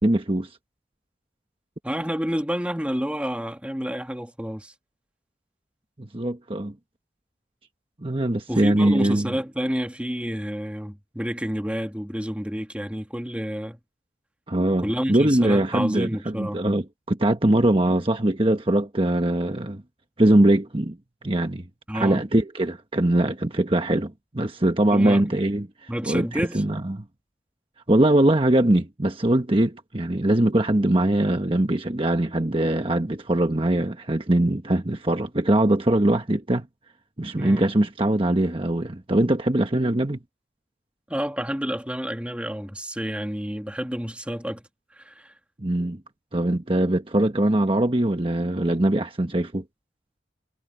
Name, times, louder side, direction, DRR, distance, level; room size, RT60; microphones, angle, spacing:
voice 1, 0.0-0.5 6.0-6.7 8.0-9.3 14.5-19.8 20.2-21.0 21.2-21.6 21.9-27.0 27.9-36.7 37.2-40.2 45.6-46.0 46.3-49.6, right 1 dB, 30° right, 1.2 m, -22 dB
voice 2, 1.8-4.7 8.5-13.8 14.8-16.6 21.9-22.2 24.9-25.4 25.9-26.6 37.4-37.7 41.1-44.6 44.9-45.3, equal, 5° right, 1.7 m, -29 dB
head